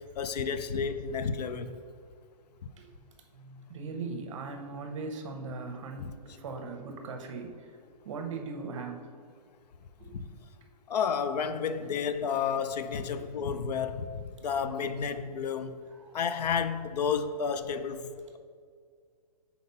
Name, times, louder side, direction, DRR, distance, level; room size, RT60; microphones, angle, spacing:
voice 1, 0.2-1.8 6.0-6.1 10.1-10.3 10.9-15.8 16.1-18.0, left 6 dB, 75° left, 0.5 m, -31 dB
voice 2, 3.3-7.7 8.0-9.1 10.0-10.2 13.1-13.2 14.7-14.8 16.0-16.2, right 4 dB, 50° right, 0.7 m, -39 dB
4.2 x 4.1 x 5.4 m
hypercardioid pair, 165°, 21 cm